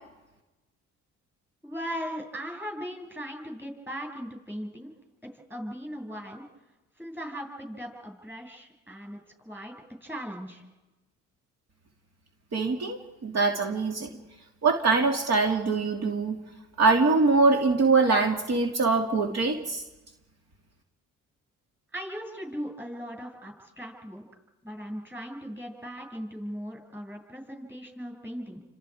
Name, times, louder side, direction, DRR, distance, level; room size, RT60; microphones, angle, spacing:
voice 1, 1.6-4.9 5.2-6.5 7.0-9.7 10.0-10.6 21.9-24.3 24.6-28.6, equal, 5° right, 2 dB, 7.2 m, -38 dB
voice 2, 12.5-14.1 14.6-16.4 16.8-19.8, right 3 dB, 55° right, 2 dB, 2.7 m, -23 dB
29.5 x 26.0 x 5.0 m, 1.1 s
cardioid pair, 90°, 30 cm